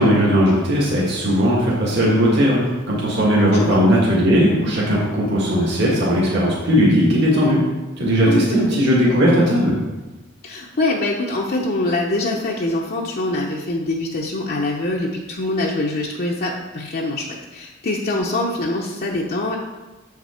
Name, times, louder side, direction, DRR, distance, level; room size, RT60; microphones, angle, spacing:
voice 1, 0.0-7.6 8.0-9.7, equal, 55° right, -5 dB, 1.8 m, -17 dB
voice 2, 8.3-8.8 10.4-19.6, left 2 dB, 50° left, -2 dB, 0.7 m, -24 dB
7.2 x 5.9 x 4.3 m, 1.2 s
head